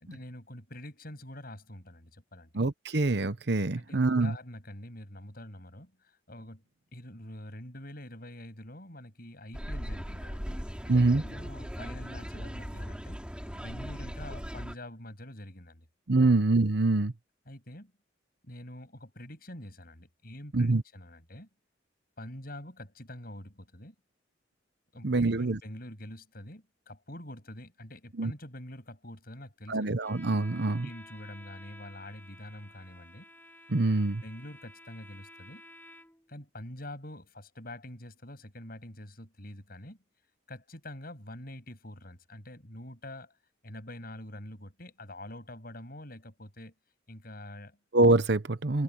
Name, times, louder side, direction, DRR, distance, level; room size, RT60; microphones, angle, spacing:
voice 1, 0.0-2.5 3.8-6.6 6.9-13.2 13.6-15.9 16.2-16.4 17.5-17.9 18.4-21.5 22.2-23.9 24.9-29.9 30.5-33.3 33.9-34.0 34.2-35.6 36.3-40.0 40.5-43.3 43.6-46.7 47.1-47.8 48.7-48.8, left 1 dB, 50° left, 7.7 m, -46 dB
voice 2, 2.5-4.4 10.9-11.2 16.1-17.1 20.5-20.8 25.0-25.6 28.2-28.3 29.7-30.9 33.7-34.2 47.9-48.8, right 2 dB, 60° right, 1.0 m, -25 dB
sound 1, 9.5-14.7, equal, 5° right, 4.1 m, -39 dB
Bowed string instrument, 30.0-36.3, left 1 dB, 10° left, 5.2 m, -52 dB
head